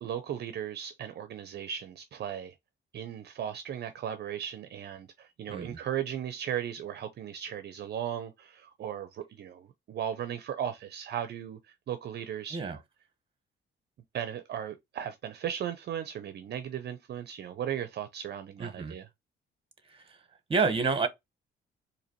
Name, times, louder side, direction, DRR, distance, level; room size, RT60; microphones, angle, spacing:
voice 1, 0.0-2.5 2.9-11.6 11.9-12.8 14.1-19.0, right 9 dB, 55° right, 0.5 m, -36 dB
voice 2, 5.5-5.8 12.5-12.8 18.6-19.0 19.9-20.2 20.5-21.1, right 4 dB, 25° right, 1.0 m, -29 dB
3.9 x 2.8 x 2.9 m
cardioid pair, 90°, 20 cm